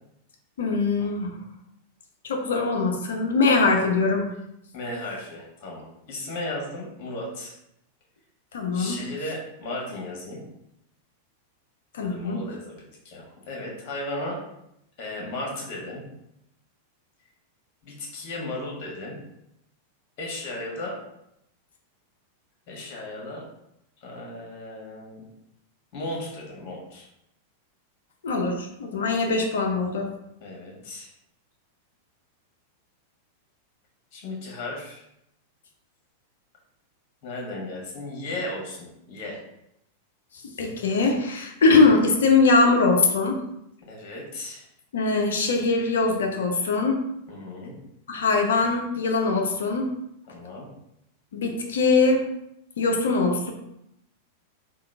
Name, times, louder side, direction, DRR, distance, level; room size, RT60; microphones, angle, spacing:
voice 1, 0.6-1.3 2.2-4.2 8.5-9.0 11.9-12.4 28.2-30.1 40.6-43.4 44.9-47.0 48.1-49.9 51.3-52.2 52.8-53.5, left 3 dB, 65° left, 2 dB, 0.6 m, -22 dB
voice 2, 4.7-7.5 8.7-10.4 12.0-14.4 15.0-16.0 17.8-19.2 20.2-21.0 22.7-23.4 24.0-25.2 25.9-27.1 30.4-31.1 34.1-35.0 37.2-39.4 43.9-44.6 47.3-47.7 50.3-50.7, left 1 dB, 45° left, -2 dB, 1.4 m, -35 dB
3.7 x 2.4 x 3.5 m, 0.80 s
figure-of-eight pair, 90°, 0 cm